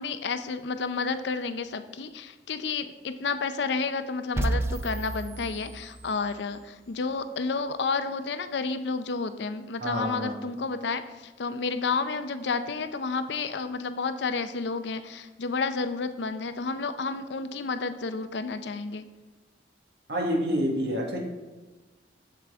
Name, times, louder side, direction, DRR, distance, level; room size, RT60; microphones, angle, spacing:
voice 1, 0.0-19.0, left 4 dB, 75° left, 10 dB, 0.5 m, -31 dB
sound 1, 4.4-6.4, right 1 dB, 15° right, 0.3 m, -31 dB
voice 2, 9.8-10.4 20.1-21.2, equal, 65° right, 0 dB, 1.6 m, -28 dB
7.5 x 7.3 x 3.5 m, 1.2 s
head